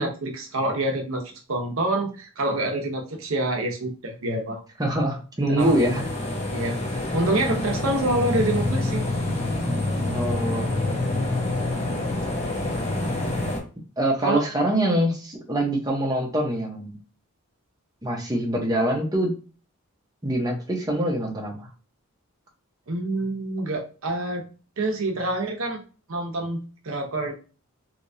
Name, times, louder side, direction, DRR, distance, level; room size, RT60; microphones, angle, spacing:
voice 1, 0.0-4.6 5.5-5.9 6.5-6.8 7.1-9.0 14.2-14.4 22.9-24.4 24.8-25.8 26.1-27.3, right 2 dB, 70° right, 2 dB, 0.8 m, -27 dB
voice 2, 4.8-6.0 10.1-10.8 14.0-17.0 18.0-19.3 20.2-21.7, right 1 dB, 15° right, -1 dB, 0.8 m, -24 dB
sound 1, 5.6-13.6, left 2 dB, 30° left, 1.0 m, -27 dB
3.4 x 2.8 x 2.6 m, 0.36 s
head